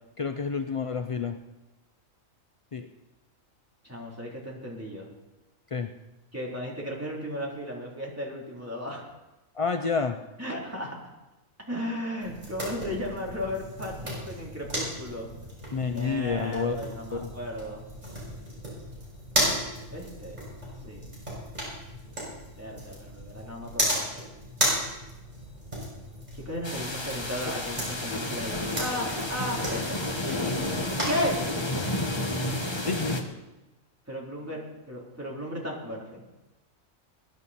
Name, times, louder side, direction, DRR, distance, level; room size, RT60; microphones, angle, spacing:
voice 1, 0.2-1.4 2.7-2.9 5.7-5.9 9.5-10.2 15.7-16.8 17.1-17.3 30.3-30.6 32.8-33.2, left 5 dB, 55° left, 7 dB, 0.3 m, -29 dB
voice 2, 3.8-5.1 6.3-9.0 10.4-11.1 11.7-15.3 15.9-17.9 19.9-20.4 20.8-21.1 22.5-24.1 26.4-30.0 31.1-31.4 34.1-36.2, equal, 10° right, -4 dB, 3.3 m, -35 dB
sound 1, 12.2-31.5, equal, 30° right, 6.3 m, -35 dB
sound 2, 26.6-33.2, left 1 dB, 20° left, 1.3 m, -31 dB
21.0 x 10.5 x 4.2 m, 1.0 s
omnidirectional pair, 1.4 m